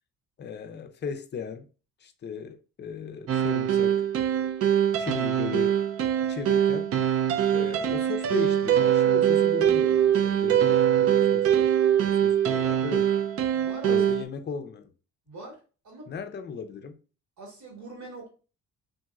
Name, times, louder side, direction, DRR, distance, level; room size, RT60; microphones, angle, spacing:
voice 1, 0.4-1.7 2.0-4.0 5.0-5.8 6.2-6.9 7.5-11.8 12.0-13.1 13.8-14.9 16.1-17.0, left 6 dB, 35° left, 0.5 m, -36 dB
sound 1, 3.3-14.2, right 10 dB, 50° right, 0.4 m, -23 dB
voice 2, 13.5-14.0 15.3-15.6 15.8-16.1 17.4-18.3, right 2 dB, 70° right, 1.5 m, -42 dB
2.9 x 2.6 x 2.3 m
cardioid pair, 90°, 30 cm